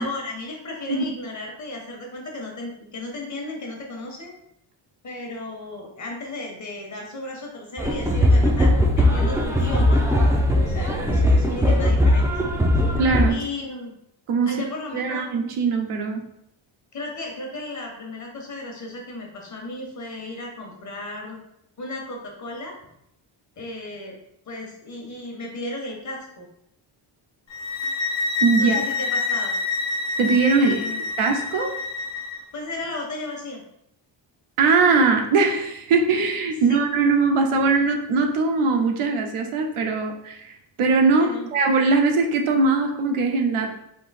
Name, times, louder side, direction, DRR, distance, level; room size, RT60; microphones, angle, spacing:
voice 1, 0.0-4.3 5.0-10.0 10.6-12.3 12.7-13.0 13.3-13.9 14.5-15.3 16.9-21.4 21.8-22.7 23.6-24.1 24.5-26.5 28.6-29.6 30.6-31.0 32.5-33.6 36.7-36.8 41.1-41.5, left 2 dB, 35° left, 0 dB, 1.0 m, -34 dB
sound 1, 7.8-13.3, left 1 dB, 5° right, 0.4 m, -19 dB
voice 2, 13.0-13.4 14.3-14.6 14.9-16.2 28.4-28.8 30.2-30.8 31.2-31.7 34.6-40.5 40.8-43.7, right 4 dB, 90° right, 3 dB, 0.8 m, -21 dB
sound 2, 27.5-32.4, left 3 dB, 65° left, 0.9 m, -27 dB
3.8 x 2.7 x 4.1 m, 0.79 s
wide cardioid pair, 150°, 49 cm